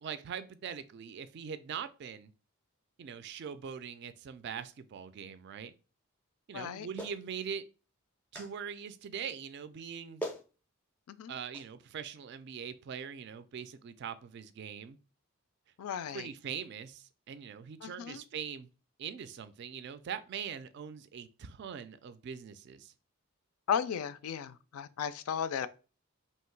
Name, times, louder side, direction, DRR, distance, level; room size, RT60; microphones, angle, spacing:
voice 1, 0.0-2.3 3.0-5.7 6.5-7.6 8.3-10.2 11.3-15.0 16.1-18.7 19.0-22.9, right 7 dB, 50° right, 0.3 m, -42 dB
voice 2, 6.5-6.9 11.1-11.3 15.8-16.3 17.8-18.2 23.7-25.7, left 8 dB, 85° left, 0.3 m, -35 dB
Clapping, 7.0-7.2 8.3-8.5 9.8-9.9 10.2-10.5 11.5-11.7, equal, 10° left, 0.5 m, -39 dB
3.0 x 2.7 x 4.5 m
head